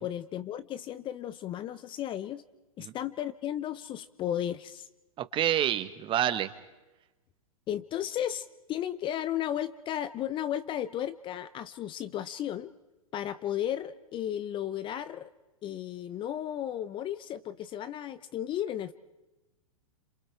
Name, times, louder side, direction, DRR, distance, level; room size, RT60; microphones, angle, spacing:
voice 1, 0.0-2.4 2.8-4.9 7.7-12.7 13.1-15.3 15.6-18.9, left 11 dB, 30° left, 15 dB, 0.7 m, -34 dB
voice 2, 5.2-6.5, right 11 dB, 30° right, 12 dB, 1.3 m, -28 dB
28.5 x 27.5 x 4.6 m, 1.1 s
hypercardioid pair, 110°, 18 cm